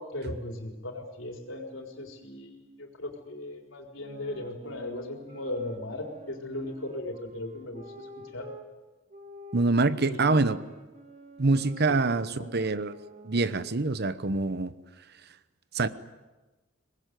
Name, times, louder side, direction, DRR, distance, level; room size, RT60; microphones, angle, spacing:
voice 1, 0.0-8.5 10.0-10.6 12.3-12.5, left 1 dB, 75° left, 4.2 m, -38 dB
sound 1, 4.0-8.7 9.1-14.1, equal, 40° right, 3.1 m, -49 dB
voice 2, 9.5-10.6 11.4-13.0 13.2-14.7 15.7-15.9, right 3 dB, 55° right, 1.0 m, -25 dB
24.0 x 20.0 x 9.3 m
head